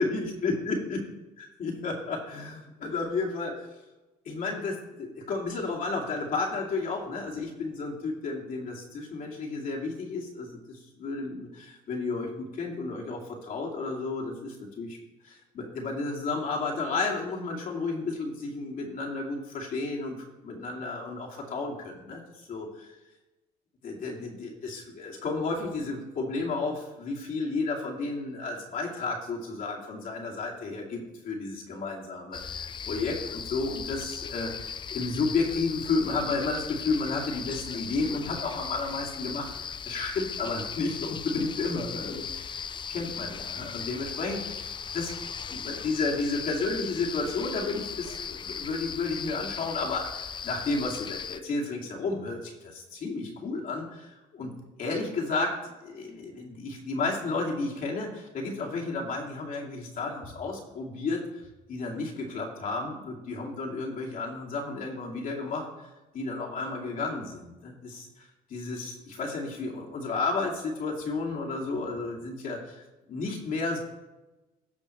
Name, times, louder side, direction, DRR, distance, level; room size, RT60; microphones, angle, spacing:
voice 1, 0.0-1.0 1.6-3.7 4.3-15.0 15.2-20.2 20.4-22.2 22.5-22.9 23.8-42.6 42.9-45.1 45.5-54.5 54.8-55.6 55.8-61.2 61.7-65.7 66.1-73.8, left 3 dB, 55° left, -2 dB, 2.4 m, -32 dB
sound 1, 32.3-51.4, left 7 dB, 30° left, 0.4 m, -38 dB
17.0 x 6.1 x 3.2 m, 1.1 s
cardioid pair, 110°, 17 cm